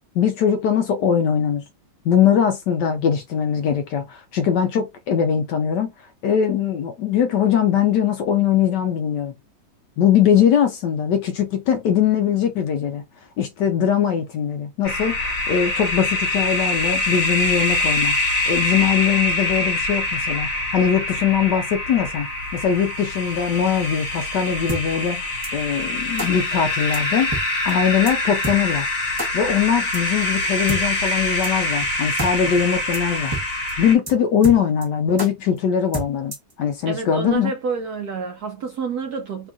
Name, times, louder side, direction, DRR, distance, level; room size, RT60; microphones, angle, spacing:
voice 1, 0.1-1.6 2.0-9.3 10.0-13.0 13.4-18.2 18.5-22.3 22.5-27.3 27.6-28.9 29.3-33.4 33.8-37.5, left 8 dB, 75° left, 1.0 m, -21 dB
sound 1, 14.8-34.0, left 1 dB, 50° left, 1.7 m, -24 dB
sound 2, 24.7-24.8 25.4-25.5 26.2-26.3 26.9-27.0 27.3-27.4 27.7-27.8 28.1-28.2 28.4-28.6 29.2-29.3 29.9-30.0 30.7-30.8 31.4-31.5 31.8-31.9 32.2-32.3 32.6-32.7 32.9-33.0 33.3-33.4 33.7-33.8 34.1-34.2 34.4-34.9 35.2-35.3 35.9-36.5, right 2 dB, 25° right, 0.5 m, -28 dB
voice 2, 36.9-39.5, right 5 dB, 70° right, 1.0 m, -28 dB
3.6 x 2.4 x 3.5 m
omnidirectional pair, 2.2 m